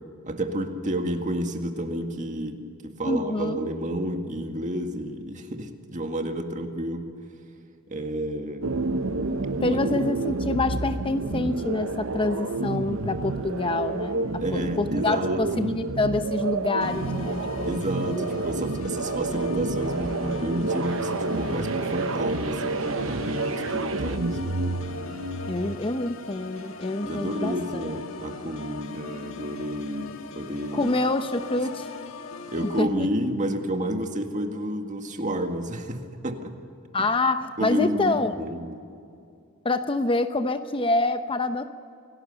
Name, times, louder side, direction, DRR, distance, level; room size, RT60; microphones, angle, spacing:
voice 1, 0.2-7.1 7.9-8.7 9.7-9.8 14.4-15.7 17.7-24.7 27.0-30.9 32.5-36.5 37.6-38.8, right 1 dB, 35° right, 5 dB, 1.9 m, -30 dB
voice 2, 3.0-3.6 9.6-18.2 25.5-27.8 30.7-31.9 32.8-33.1 36.9-38.3 39.6-41.7, left 2 dB, 25° left, 9 dB, 0.7 m, -27 dB
sound 1, 8.6-25.8, right 3 dB, 65° right, 1.0 m, -29 dB
Organ, 16.8-32.8, left 3 dB, 75° left, 1.5 m, -40 dB
28.0 x 17.5 x 6.9 m, 2.4 s
head